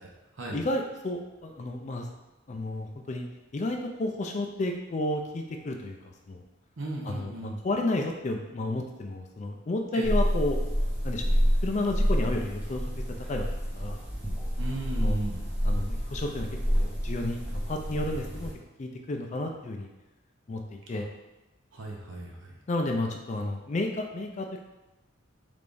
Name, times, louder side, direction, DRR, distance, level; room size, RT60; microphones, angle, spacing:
voice 1, 0.5-2.1 2.5-3.2 3.5-6.4 7.0-10.6 11.0-12.9 13.3-14.0 15.0-15.2 15.6-18.5 18.8-19.9 20.5-21.1 22.7-24.6, left 2 dB, 35° left, 3 dB, 0.3 m, -32 dB
voice 2, 6.8-7.6 9.9-10.2 14.6-15.5 20.9-21.0 21.7-22.6, right 2 dB, 75° right, -2 dB, 0.8 m, -37 dB
sound 1, 10.0-18.5, equal, 5° right, 0.7 m, -28 dB
3.5 x 3.3 x 2.6 m, 1.0 s
head